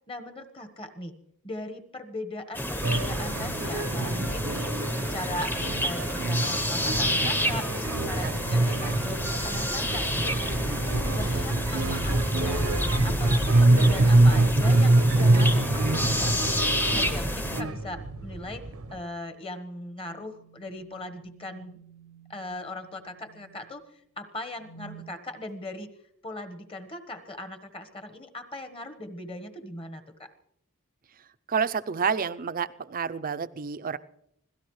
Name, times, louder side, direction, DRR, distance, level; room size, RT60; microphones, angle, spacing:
voice 1, 0.1-1.1 1.4-4.5 5.1-10.3 10.9-12.7 13.0-18.6 18.9-21.8 22.3-23.8 24.2-25.9 26.2-30.3, left 1 dB, 25° left, 8 dB, 1.3 m, -39 dB
sound 1, 2.5-17.6, equal, 10° left, 0.9 m, -29 dB
sound 2, 2.8-19.0, right 2 dB, 85° right, 1.0 m, -25 dB
sound 3, 19.6-23.8 24.5-25.2, right 2 dB, 80° left, 2.6 m, -51 dB
voice 2, 31.5-34.0, right 6 dB, 40° right, 13 dB, 0.5 m, -29 dB
25.5 x 17.0 x 3.2 m, 0.73 s
head